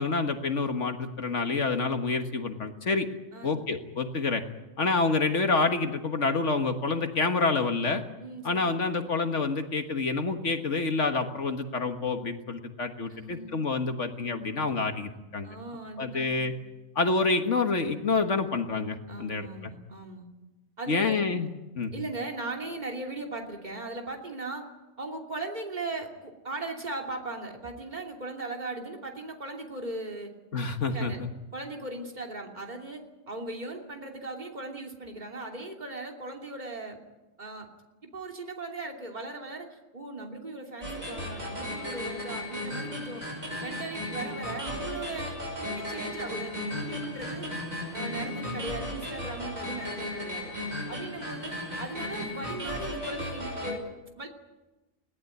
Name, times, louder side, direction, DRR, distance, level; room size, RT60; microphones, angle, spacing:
voice 1, 0.0-3.1 3.4-4.4 4.8-8.0 8.4-15.6 16.0-16.5 17.0-19.5 20.9-21.5 21.8-21.9 30.5-31.3, left 3 dB, 60° left, 6 dB, 1.8 m, -28 dB
voice 2, 8.2-8.7 13.1-13.6 15.4-16.5 19.1-20.3 20.8-21.2 21.9-24.6 25.0-30.3 30.9-31.2 31.5-37.0 37.4-37.7 38.0-43.2 43.6-47.5 47.9-50.5 50.9-54.3, right 2 dB, 30° right, 2 dB, 3.0 m, -38 dB
sound 1, 40.8-53.7, left 1 dB, 80° right, 6.4 m, -35 dB
21.5 x 17.5 x 9.3 m, 1.1 s
omnidirectional pair, 1.4 m